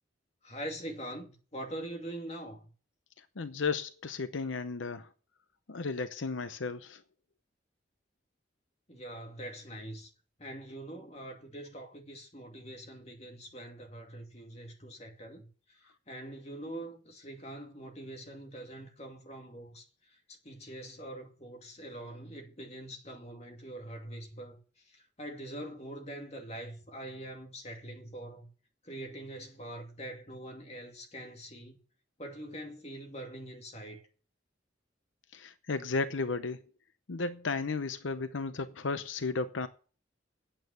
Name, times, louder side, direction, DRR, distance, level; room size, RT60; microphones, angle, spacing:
voice 1, 0.4-2.7 8.9-10.1 10.4-15.5 16.1-19.8 20.4-24.6 24.9-28.5 28.8-31.8 32.2-34.0, right 1 dB, 35° left, 2.5 m, -43 dB
voice 2, 3.4-5.1 5.7-7.0 35.3-36.6 37.1-39.7, left 4 dB, 90° left, 0.7 m, -34 dB
8.9 x 8.9 x 7.9 m
head